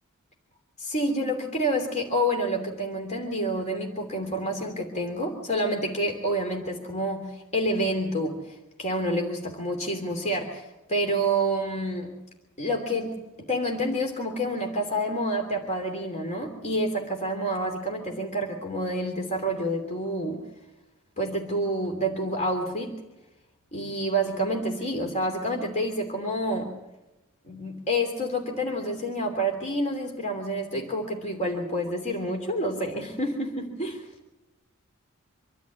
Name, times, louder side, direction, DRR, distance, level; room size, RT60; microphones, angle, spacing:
voice 1, 0.8-12.1 12.6-20.4 21.2-23.0 23.7-26.7 27.4-34.0, right 1 dB, 35° left, 2 dB, 3.1 m, -28 dB
26.0 x 12.5 x 8.5 m, 0.98 s
head